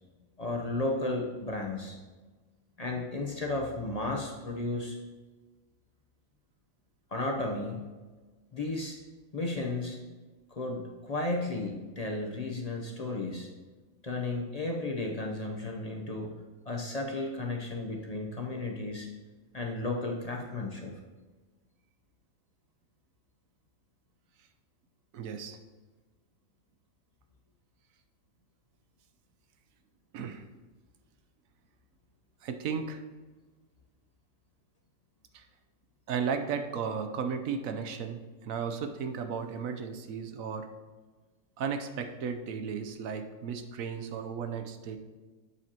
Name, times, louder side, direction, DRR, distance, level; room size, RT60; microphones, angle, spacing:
voice 1, 0.4-2.0 2.8-5.0 7.1-7.8 8.5-9.0 9.3-10.0 10.5-13.5 14.0-16.3 16.7-19.1 19.5-21.0, left 2 dB, 35° left, 0 dB, 0.7 m, -33 dB
voice 2, 25.1-25.6 30.1-30.4 32.4-33.0 35.3-35.5 36.1-40.7 41.6-45.0, right 6 dB, 90° right, 7 dB, 1.1 m, -35 dB
8.3 x 7.5 x 2.9 m, 1.3 s
omnidirectional pair, 1.4 m